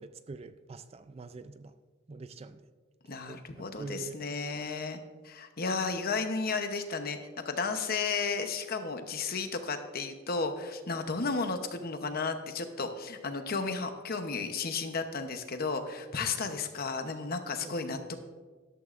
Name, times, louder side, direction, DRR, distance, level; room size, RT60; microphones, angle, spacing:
voice 1, 0.0-1.8 2.1-2.6 3.1-3.5 3.8-4.6 17.6-18.0, right 3 dB, 30° right, 11 dB, 0.4 m, -45 dB
voice 2, 3.1-5.0 5.2-7.2 7.4-18.2, left 4 dB, 50° left, 7 dB, 0.9 m, -33 dB
13.0 x 12.0 x 2.5 m, 1.4 s
head